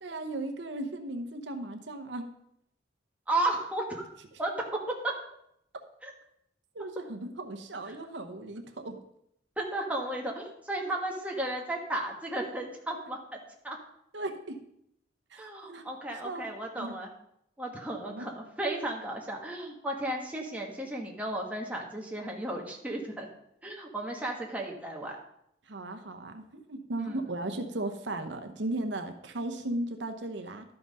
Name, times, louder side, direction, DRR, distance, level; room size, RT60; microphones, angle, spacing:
voice 1, 0.0-2.2 6.7-9.0 14.1-14.6 15.3-15.9 16.2-16.5 16.8-16.9 18.1-18.3 25.7-30.6, right 2 dB, 70° right, 5 dB, 0.9 m, -36 dB
voice 2, 3.3-4.0 4.4-4.5 4.9-5.1 6.0-6.1 7.9-8.0 9.6-13.4 13.6-13.8 15.3-17.1 17.6-23.3 23.6-25.2 27.0-27.2, right 1 dB, 5° right, -1 dB, 1.5 m, -34 dB
12.0 x 5.9 x 5.4 m, 0.76 s
head